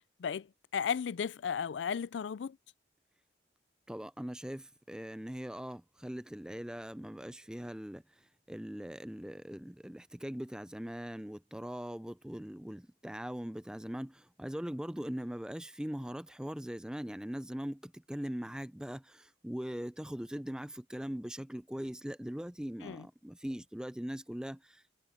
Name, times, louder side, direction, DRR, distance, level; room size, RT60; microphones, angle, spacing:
voice 1, 0.2-2.6 22.8-23.1, left 7 dB, 85° left, 0.4 m, -35 dB
voice 2, 3.9-8.0 8.5-24.9, equal, 5° right, 0.4 m, -41 dB
head